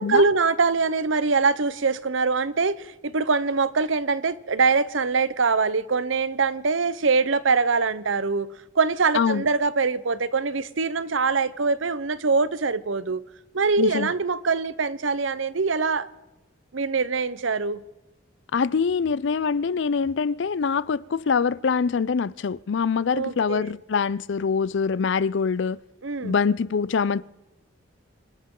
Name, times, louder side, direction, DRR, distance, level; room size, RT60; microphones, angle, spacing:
voice 1, 0.0-8.5 8.7-13.2 13.5-16.1 16.7-17.8 23.1-23.8 26.0-26.3, right 4 dB, 75° right, 0.8 m, -23 dB
voice 2, 9.1-9.5 13.8-14.1 18.5-25.8 26.2-27.2, left 5 dB, 65° left, 0.4 m, -24 dB
26.0 x 13.0 x 3.8 m
head